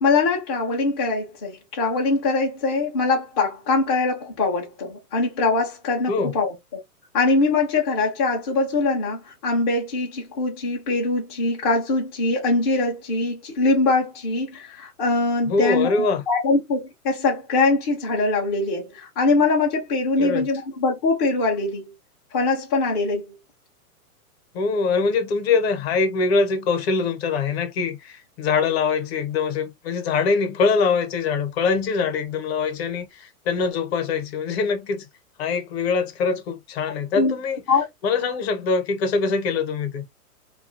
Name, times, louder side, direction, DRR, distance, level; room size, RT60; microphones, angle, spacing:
voice 1, 0.0-6.5 7.1-21.9 22.3-23.3 37.1-37.4 37.7-37.8, left 3 dB, 20° left, 0.4 m, -22 dB
voice 2, 15.5-16.2 20.2-20.5 24.5-35.1 35.4-37.6 38.0-40.0, left 4 dB, 45° left, 0.7 m, -23 dB
2.6 x 2.3 x 2.5 m
hypercardioid pair, 140°, 46 cm